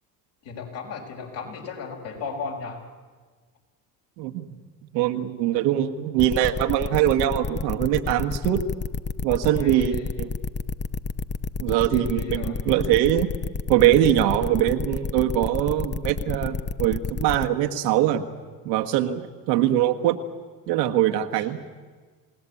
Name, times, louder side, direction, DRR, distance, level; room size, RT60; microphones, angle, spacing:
voice 1, 0.4-2.8 9.5-10.1 11.9-12.6 21.3-21.5, left 5 dB, 65° left, 1 dB, 5.5 m, -35 dB
voice 2, 4.2-4.6 4.9-8.6 9.2-10.3 11.6-13.3 13.7-18.3 18.6-20.2 20.7-21.6, right 12 dB, 80° right, 6 dB, 1.6 m, -22 dB
sound 1, 6.2-17.5, left 4 dB, 20° left, 0.9 m, -29 dB
28.0 x 18.0 x 8.6 m, 1.5 s
hypercardioid pair, 65°, 49 cm